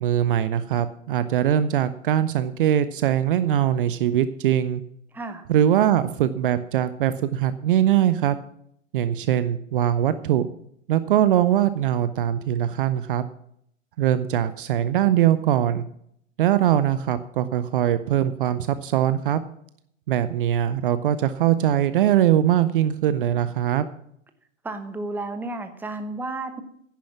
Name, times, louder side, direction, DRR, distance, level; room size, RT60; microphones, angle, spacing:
voice 1, 0.0-4.8 5.5-8.4 8.9-10.5 10.9-13.2 14.0-15.8 16.4-19.4 20.1-23.9, right 11 dB, 40° right, 13 dB, 0.7 m, -21 dB
voice 2, 24.6-26.6, right 2 dB, 5° right, 8 dB, 1.0 m, -32 dB
10.5 x 10.5 x 5.9 m, 0.70 s
figure-of-eight pair, 105°, 39 cm